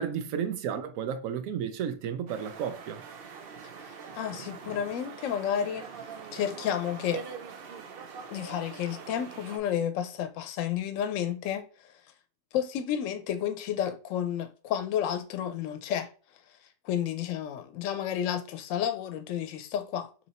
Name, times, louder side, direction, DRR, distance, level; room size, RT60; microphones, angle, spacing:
voice 1, 0.0-3.0, right 8 dB, 80° right, 1.0 m, -32 dB
sound 1, 2.3-9.6, right 6 dB, 60° right, 0.7 m, -43 dB
voice 2, 3.6-5.8 6.3-7.3 8.3-11.9 12.5-16.1 16.8-20.3, left 9 dB, 75° left, 0.9 m, -31 dB
2.9 x 2.9 x 4.1 m
omnidirectional pair, 1.4 m